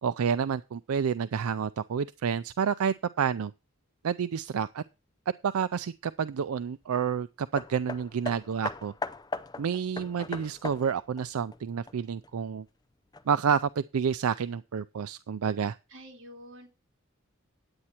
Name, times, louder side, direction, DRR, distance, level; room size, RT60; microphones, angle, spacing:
voice 1, 0.0-3.5 4.0-4.8 5.4-8.9 9.6-12.7 13.3-15.8, right 7 dB, 90° right, 0.4 m, -29 dB
Hammer, 7.6-12.3 13.1-13.2, left 3 dB, 20° left, 0.5 m, -39 dB
voice 2, 15.9-16.7, equal, 65° right, 2.8 m, -47 dB
9.7 x 8.7 x 4.3 m
head